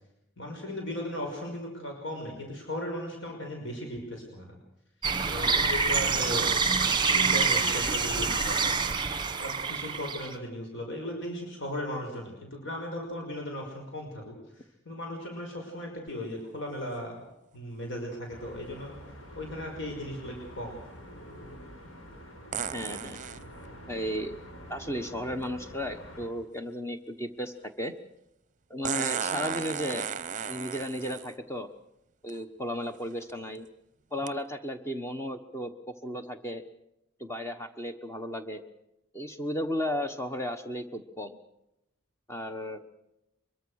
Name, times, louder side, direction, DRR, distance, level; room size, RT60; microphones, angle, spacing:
voice 1, 0.4-4.5 5.3-6.6 6.9-8.8 9.4-14.3 14.9-17.2 17.5-19.0 19.4-20.8, left 1 dB, 65° left, 1 dB, 5.6 m, -37 dB
sound 1, 5.0-10.3, right 4 dB, 25° right, 1.6 m, -26 dB
sound 2, 16.1-16.2 22.5-23.4 25.4-25.5 28.8-31.3 32.3-32.4 33.0-33.3 34.3-34.4, right 7 dB, 40° right, 0.8 m, -34 dB
sound 3, 18.3-26.3, equal, 85° left, 5.8 m, -47 dB
voice 2, 22.7-23.2 23.9-24.4 24.7-27.9 28.7-30.1 30.5-31.7 32.2-33.7 34.1-36.6 37.2-38.6 39.1-41.3 42.3-42.8, equal, 15° left, 6 dB, 1.2 m, -34 dB
23.5 x 23.0 x 6.5 m, 0.86 s
head